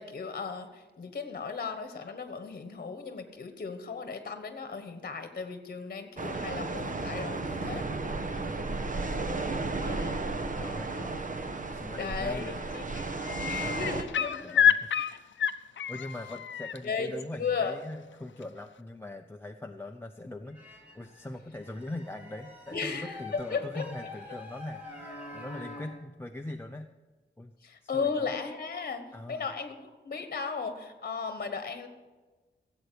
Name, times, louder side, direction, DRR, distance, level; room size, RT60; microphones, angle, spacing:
voice 1, 0.0-7.8 9.8-11.2 11.9-12.4 12.7-14.6 14.9-15.2 16.8-17.1 17.4-17.8 22.7-23.8 24.3-24.4 27.6-29.7 30.0-31.9, left 5 dB, 50° left, 8 dB, 1.2 m, -36 dB
sound 1, 6.2-14.0, right 3 dB, 45° right, 1.0 m, -34 dB
voice 2, 8.4-9.0 9.3-10.3 10.6-10.9 11.7-12.6 14.4-15.2 15.7-26.9 27.4-27.5 27.8-28.3 29.1-29.5, left 1 dB, 10° left, 3 dB, 0.5 m, -42 dB
sound 2, 12.1-12.4 12.7-16.8 18.4-18.5, left 9 dB, 80° left, 0.5 m, -28 dB
sound 3, 20.4-21.3 21.6-26.0, left 2 dB, 10° right, 3.4 m, -46 dB
16.0 x 7.9 x 6.8 m, 1.3 s
wide cardioid pair, 155°, 19 cm